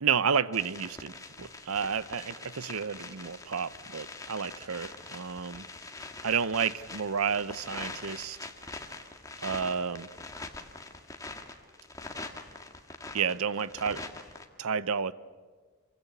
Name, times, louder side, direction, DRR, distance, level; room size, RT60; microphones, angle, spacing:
voice 1, 0.0-5.7 6.2-8.4 9.4-10.1 13.1-14.1 14.6-15.1, right 6 dB, 80° right, 0.8 m, -31 dB
sound 1, 0.5-14.5, left 3 dB, 15° left, 1.8 m, -43 dB
28.0 x 23.5 x 8.1 m
head